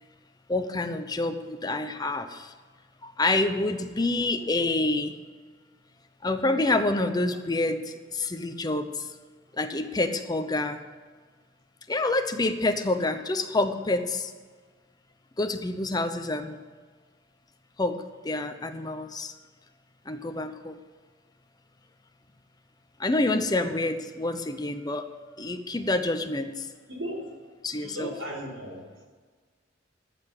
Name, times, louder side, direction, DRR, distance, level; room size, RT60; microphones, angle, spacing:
voice 1, 0.5-2.5 3.0-5.2 6.2-9.1 9.6-10.8 11.9-14.3 15.4-16.6 17.8-19.3 20.1-20.8 23.0-25.1 25.4-26.7 27.6-28.1, left 2 dB, 20° left, 7 dB, 0.8 m, -27 dB
voice 2, 23.3-23.7 26.9-27.3 27.8-28.8, right 1 dB, 90° right, -2 dB, 3.7 m, -36 dB
14.0 x 6.0 x 8.2 m, 1.5 s
head